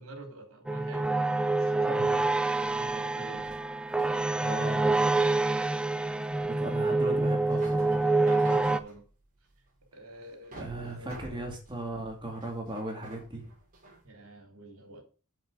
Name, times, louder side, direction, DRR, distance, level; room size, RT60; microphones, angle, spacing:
voice 1, 0.0-2.2 2.6-3.6 6.4-6.6 8.3-9.1 9.9-11.4 14.0-15.0, right 2 dB, 70° right, 3.4 m, -47 dB
sound 1, 0.7-8.8, right 2 dB, 5° right, 0.5 m, -27 dB
voice 2, 1.8-2.1 4.4-5.0 6.5-8.0 10.6-13.5, right 1 dB, 20° right, 2.4 m, -37 dB
sound 2, 2.5-14.1, right 2 dB, 40° right, 4.3 m, -50 dB
7.9 x 7.7 x 5.0 m
head